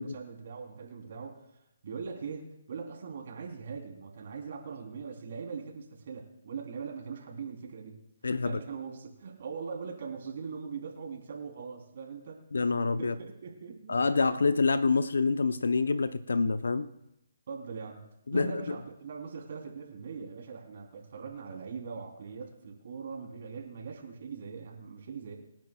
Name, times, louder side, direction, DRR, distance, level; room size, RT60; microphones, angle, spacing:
voice 1, 0.0-1.5 1.8-8.0 8.3-12.4 13.0-13.9 17.5-18.0 18.3-25.3, right 5 dB, 55° right, 0 dB, 3.6 m, -41 dB
voice 2, 8.2-8.6 12.5-13.1 13.9-16.9 18.3-18.8, left 4 dB, 75° left, 12 dB, 0.7 m, -27 dB
27.0 x 10.5 x 2.4 m, 0.85 s
figure-of-eight pair, 145°, 0 cm